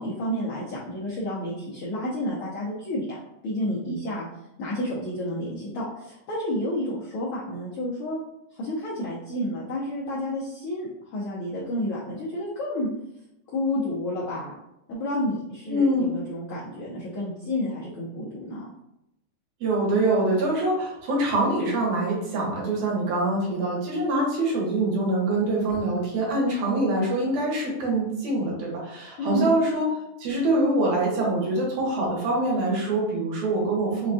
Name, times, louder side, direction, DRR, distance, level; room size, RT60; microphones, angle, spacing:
voice 1, 0.0-4.3 4.6-8.2 8.5-12.9 13.5-14.6 14.9-18.7 29.2-29.6, left 1 dB, 80° left, -7 dB, 1.2 m, -30 dB
voice 2, 15.7-16.0 19.6-29.9 30.2-34.1, right 2 dB, 75° right, -4 dB, 2.4 m, -24 dB
5.1 x 2.3 x 2.6 m, 0.86 s
omnidirectional pair, 3.4 m